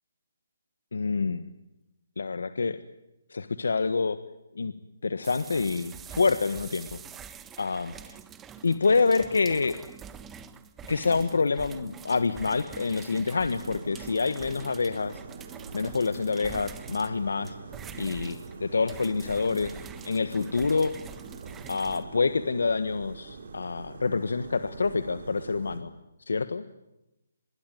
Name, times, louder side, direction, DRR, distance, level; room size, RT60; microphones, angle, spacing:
voice 1, 0.9-1.4 2.2-2.8 3.3-4.2 4.5-4.7 5.0-7.0 7.6-7.9 8.6-9.7 10.9-15.2 15.7-17.5 18.0-19.7 20.0-20.9 21.7-25.9 26.3-26.6, left 4 dB, 80° left, 12 dB, 1.5 m, -27 dB
sound 1, 5.2-22.0, right 8 dB, 10° right, 1.1 m, -45 dB
sound 2, 13.5-25.8, right 4 dB, 60° right, 4.6 m, -44 dB
25.5 x 22.0 x 9.4 m, 0.92 s
hypercardioid pair, 160°, 0 cm